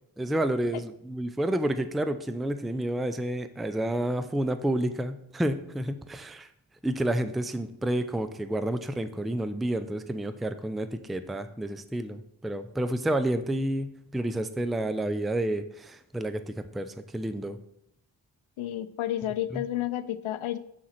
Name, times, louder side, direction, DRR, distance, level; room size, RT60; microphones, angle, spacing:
voice 1, 0.2-6.5 6.8-17.6 19.5-19.6, right 1 dB, ahead, 10 dB, 0.4 m, -30 dB
voice 2, 18.6-20.6, left 12 dB, 80° left, 13 dB, 0.6 m, -31 dB
7.6 x 3.8 x 5.7 m, 0.76 s
cardioid pair, 65°, 48 cm